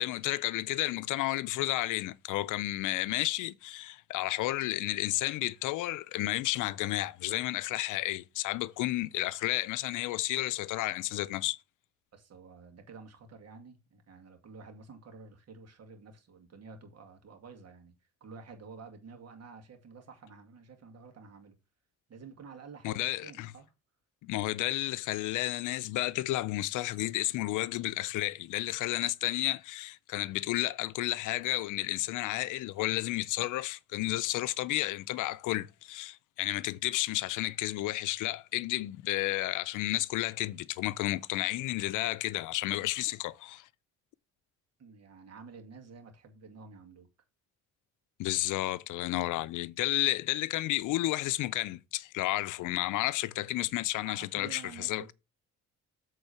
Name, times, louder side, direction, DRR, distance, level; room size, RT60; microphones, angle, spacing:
voice 1, 0.0-11.6 22.8-23.5 24.2-43.7 48.2-55.0, left 17 dB, 85° left, 0.5 m, -32 dB
voice 2, 12.1-17.9 18.2-21.6 22.1-23.7 44.8-47.1 54.0-55.1, right 4 dB, 55° right, 2.2 m, -50 dB
8.1 x 3.8 x 5.8 m
cardioid pair, 90°, 30 cm